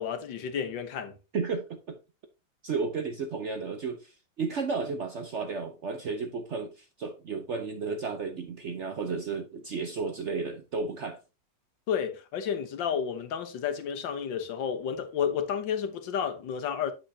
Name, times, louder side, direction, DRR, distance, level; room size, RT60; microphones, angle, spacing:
voice 1, 0.0-1.2 11.9-16.9, left 7 dB, 80° left, 1.8 m, -31 dB
voice 2, 1.3-2.0 2.6-11.2, right 4 dB, 60° right, 0.8 m, -33 dB
7.8 x 7.5 x 2.8 m
omnidirectional pair, 2.0 m